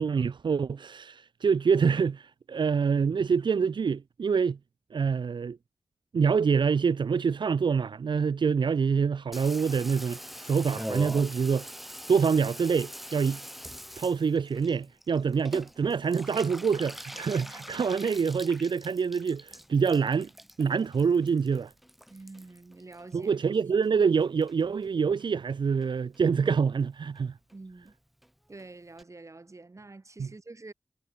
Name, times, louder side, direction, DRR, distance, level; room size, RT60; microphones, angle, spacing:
voice 1, 0.0-4.6 4.9-5.6 6.1-11.7 12.1-13.4 14.0-20.3 20.6-21.7 23.1-27.3 30.2-30.3, right 6 dB, 90° right, 0.8 m, -26 dB
Water tap faucet / Bathtub (filling or washing), 9.3-23.9 24.1-24.9 25.2-25.3 25.5-25.6 25.8-26.2 26.5-26.6 26.8-26.9 27.2-27.3 27.5-27.6 27.8-27.9 28.2-28.3 28.6-28.7 29.0-29.1, equal, ahead, 1.2 m, -43 dB
voice 2, 22.1-23.3 27.5-27.9 28.5-30.7, right 3 dB, 40° right, 6.4 m, -46 dB
wide cardioid pair, 80°, 8 cm